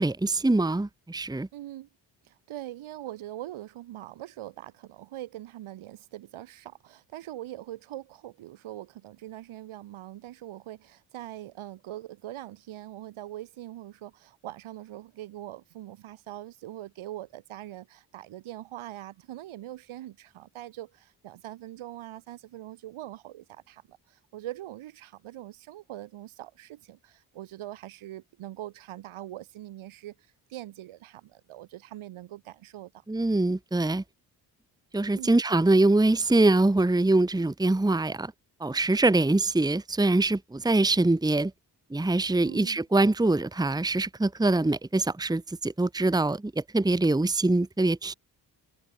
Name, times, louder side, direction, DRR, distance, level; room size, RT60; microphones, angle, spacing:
voice 1, 0.0-1.5 33.1-34.0 34.9-38.3 38.6-41.5 41.9-48.1, right 2 dB, 10° right, 1.1 m, -24 dB
voice 2, 1.5-1.9 2.2-30.1 30.5-33.0 35.1-35.4 42.4-42.8, right 14 dB, 75° right, 2.7 m, -42 dB
hypercardioid pair, 40°, 49 cm